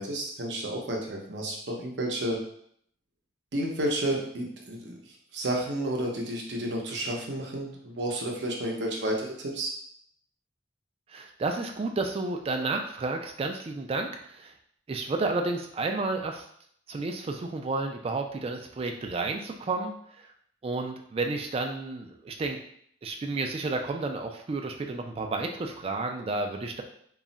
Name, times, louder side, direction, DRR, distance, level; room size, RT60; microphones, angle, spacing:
voice 1, 0.0-2.4 3.5-5.0 5.3-9.7, right 1 dB, 70° right, 0 dB, 0.6 m, -31 dB
voice 2, 11.1-14.5 14.9-16.5 16.9-20.3 20.6-22.6 23.0-26.8, right 3 dB, 30° right, 4 dB, 0.3 m, -31 dB
2.3 x 2.1 x 3.8 m, 0.66 s
head